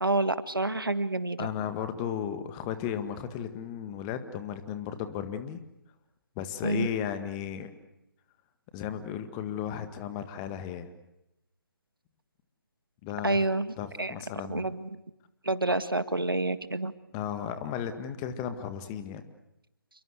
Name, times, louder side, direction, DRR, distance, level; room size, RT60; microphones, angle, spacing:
voice 1, 0.0-1.5 6.6-6.9 13.2-14.1 14.5-14.9 15.4-16.9, right 2 dB, 75° right, 12 dB, 1.9 m, -28 dB
voice 2, 1.4-5.6 6.4-7.7 8.7-10.9 13.0-13.4 13.8-14.7 15.7-15.8 17.1-19.2, left 9 dB, 15° left, 9 dB, 1.8 m, -35 dB
29.0 x 23.0 x 8.2 m, 0.87 s
figure-of-eight pair, 145°, 12 cm